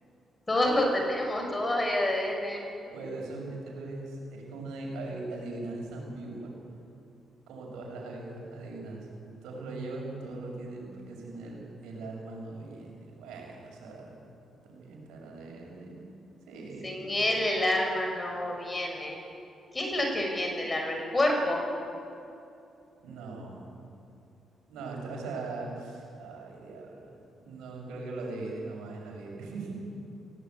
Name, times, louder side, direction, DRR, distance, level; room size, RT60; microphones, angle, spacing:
voice 1, 0.5-2.6 16.8-19.2 19.7-21.6, left 1 dB, 30° left, 2 dB, 5.9 m, -28 dB
voice 2, 2.8-6.5 7.5-9.1 9.4-14.2 14.6-16.1 16.5-17.1 23.0-23.8 24.7-29.7, right 2 dB, 80° right, -1 dB, 6.4 m, -40 dB
18.5 x 17.5 x 8.6 m, 2.7 s
supercardioid pair, 50°, 0 cm